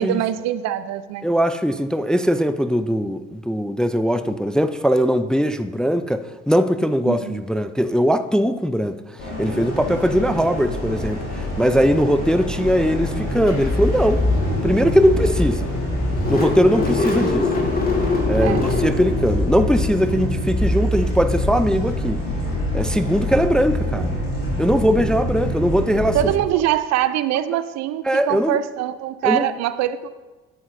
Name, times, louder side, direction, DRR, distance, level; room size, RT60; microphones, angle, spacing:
voice 1, 0.0-1.2 7.1-7.4 18.4-18.7 26.1-30.1, right 12 dB, 60° right, 14 dB, 0.5 m, -23 dB
voice 2, 1.2-9.0 9.4-14.2 14.6-15.7 16.3-17.5 18.3-22.2 22.7-24.2 24.6-26.2 28.1-28.6 29.2-29.5, equal, ahead, 11 dB, 0.4 m, -20 dB
sound 1, 9.2-26.3, left 1 dB, 90° left, 2.2 m, -27 dB
Car / Engine starting, 13.5-22.2, left 2 dB, 30° left, 2.2 m, -23 dB
9.3 x 7.9 x 2.6 m, 1.2 s
hypercardioid pair, 50°, 31 cm